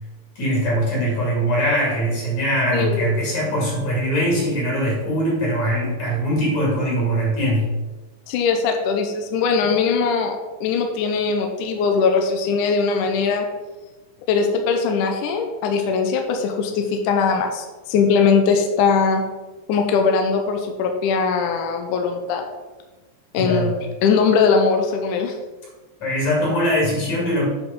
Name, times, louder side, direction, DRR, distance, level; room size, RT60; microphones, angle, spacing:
voice 1, 0.4-7.7 23.3-23.7 26.0-27.5, equal, 55° left, -4 dB, 3.6 m, -21 dB
voice 2, 2.7-3.1 8.3-13.5 14.3-19.2 19.7-22.4 23.3-25.3, left 5 dB, 75° left, 4 dB, 2.0 m, -20 dB
8.6 x 4.8 x 5.2 m, 1.2 s
omnidirectional pair, 4.2 m